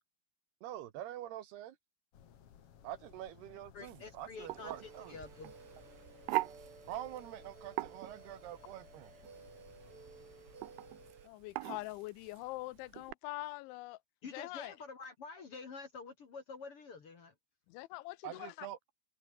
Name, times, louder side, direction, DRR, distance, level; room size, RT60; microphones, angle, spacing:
voice 1, 0.6-1.8 2.8-5.1 6.9-9.1 18.2-18.8, right 12 dB, 70° right, 2.9 m, -45 dB
sound 1, 2.1-11.1, left 9 dB, 70° left, 1.4 m, -61 dB
voice 2, 3.7-5.5 14.2-17.3, left 4 dB, 45° left, 1.9 m, -48 dB
sound 2, 3.8-13.1, right 21 dB, 90° right, 2.2 m, -43 dB
sound 3, 4.4-11.3, right 5 dB, 35° right, 3.6 m, -56 dB
voice 3, 11.2-14.0 14.3-14.7 17.7-18.7, left 20 dB, 85° left, 3.1 m, -44 dB
open air
omnidirectional pair, 5.3 m